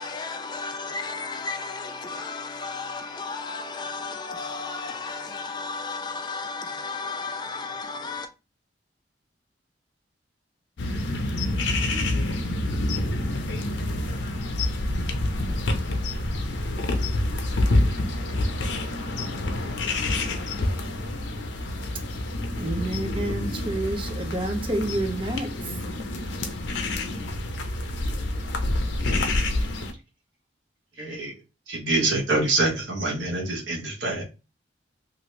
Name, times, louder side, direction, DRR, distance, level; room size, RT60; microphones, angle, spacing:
voice 1, 0.0-8.3, left 4 dB, 25° left, 0.4 m, -33 dB
sound 1, 10.8-29.9, left 1 dB, 75° left, 0.6 m, -27 dB
voice 2, 22.5-25.5, right 1 dB, 30° right, 0.6 m, -29 dB
voice 3, 31.0-31.3 31.7-34.2, right 2 dB, 85° right, 1.0 m, -25 dB
2.8 x 2.5 x 3.0 m
head